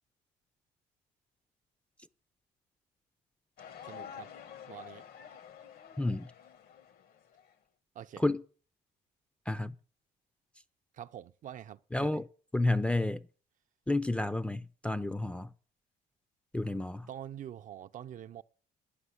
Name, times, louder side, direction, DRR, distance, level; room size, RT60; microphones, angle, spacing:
sound 1, 3.6-7.5, left 8 dB, 65° left, 1.1 m, -49 dB
voice 1, 3.8-4.3 4.7-5.0 7.9-8.2 10.9-12.2 17.1-18.4, right 10 dB, 50° right, 0.5 m, -45 dB
voice 2, 6.0-6.3 8.2-8.4 9.5-9.7 11.9-12.2 12.5-13.3 13.9-15.5 16.5-17.1, left 2 dB, 5° left, 0.4 m, -30 dB
9.9 x 5.6 x 8.1 m
cardioid pair, 110°, 17 cm